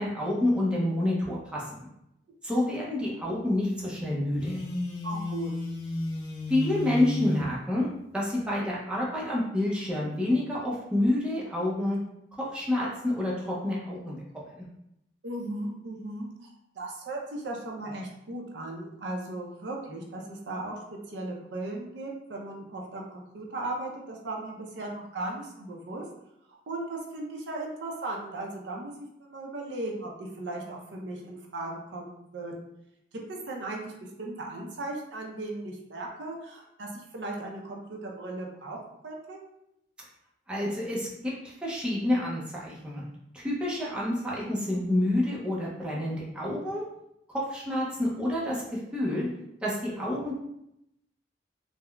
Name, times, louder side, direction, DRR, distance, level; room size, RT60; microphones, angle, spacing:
voice 1, 0.0-1.9 2.4-4.6 6.5-7.9 8.1-12.0 12.3-14.7 40.5-43.0 43.3-46.8 47.3-49.3 49.6-50.3, left 1 dB, 5° right, -5 dB, 0.5 m, -28 dB
Telephone, 4.4-7.5, left 1 dB, 90° left, 0.7 m, -33 dB
voice 2, 5.0-5.5 15.2-20.8 21.1-26.0 26.7-28.9 29.2-32.7 33.1-38.8 39.0-39.4, right 2 dB, 70° right, -1 dB, 0.5 m, -37 dB
3.6 x 2.0 x 2.2 m, 0.81 s
head